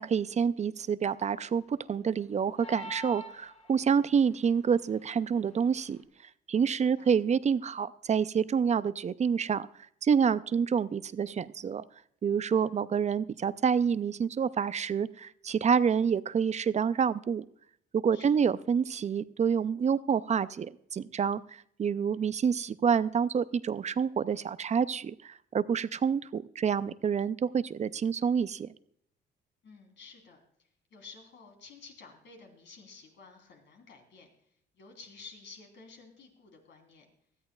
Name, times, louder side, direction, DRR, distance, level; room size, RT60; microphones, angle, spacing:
voice 1, 0.0-6.0 6.5-9.7 10.0-11.8 12.2-17.4 17.9-28.7, right 7 dB, 35° right, 16 dB, 0.5 m, -28 dB
sound 1, 2.6-4.1, equal, 35° left, 3.6 m, -43 dB
voice 2, 18.1-18.5 29.6-30.4 30.9-34.3 34.7-37.0, left 4 dB, 65° left, 2 dB, 3.5 m, -52 dB
17.5 x 13.5 x 2.4 m, 0.68 s
cardioid pair, 90°, 20 cm